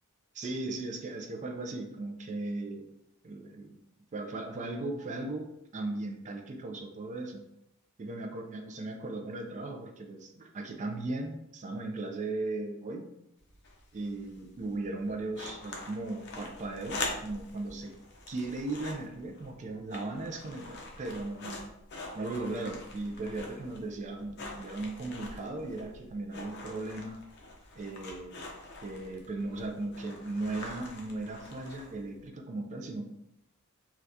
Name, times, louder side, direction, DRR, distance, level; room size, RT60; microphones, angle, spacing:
voice 1, 0.3-2.9 3.2-3.8 4.1-7.4 8.0-13.1 13.9-17.9 18.3-21.7 22.1-27.2 27.8-28.5 28.8-33.1, right 2 dB, 35° right, 4 dB, 0.4 m, -37 dB
sound 1, 13.4-32.3, left 2 dB, 55° left, 0.6 m, -44 dB
3.4 x 2.3 x 2.6 m, 0.85 s
head